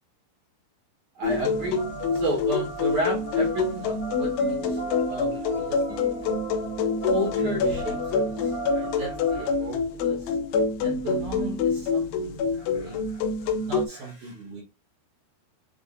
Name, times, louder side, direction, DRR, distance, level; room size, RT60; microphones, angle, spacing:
sound 1, 1.2-13.9, left 4 dB, 85° left, 2.7 m, -26 dB
voice 1, 1.2-1.8 2.1-6.3 7.1-10.4 10.8-14.6, right 1 dB, 65° right, 2.0 m, -34 dB
sound 2, 1.4-9.5, right 2 dB, 10° left, 0.7 m, -37 dB
sound 3, 5.3-10.6, right 11 dB, 80° right, 2.4 m, -42 dB
6.6 x 2.5 x 2.5 m
omnidirectional pair, 4.7 m